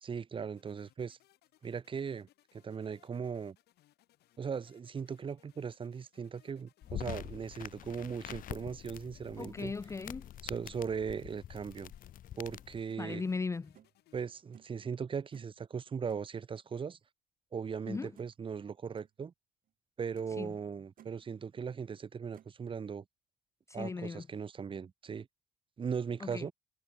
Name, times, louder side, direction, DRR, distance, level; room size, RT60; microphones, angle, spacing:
voice 1, 0.0-1.2 1.6-2.3 2.6-3.6 4.4-9.7 10.4-11.9 12.4-13.2 14.1-17.0 17.5-19.3 20.0-23.0 23.7-25.3 25.8-26.5, right 6 dB, 30° right, 1.1 m, -38 dB
sound 1, 0.6-14.3, left 15 dB, 75° left, 6.9 m, -69 dB
sound 2, 6.8-12.8, left 11 dB, 55° left, 1.0 m, -46 dB
sound 3, 6.8-7.2 7.8-7.9 8.3-8.6 9.6-9.8 10.9-11.1 12.9-13.0 13.7-14.0 14.5-14.8 15.3-15.6 16.1-16.3 17.7-17.8 18.1-18.4 18.8-19.1 19.7-19.8 20.2-20.4 20.7-21.2 22.3-22.6, right 10 dB, 55° right, 3.6 m, -58 dB
voice 2, 9.4-10.3 13.0-13.7 17.9-18.1 20.4-20.5 23.7-24.2 26.2-26.5, left 4 dB, 15° left, 0.5 m, -37 dB
cardioid pair, 110°, 17 cm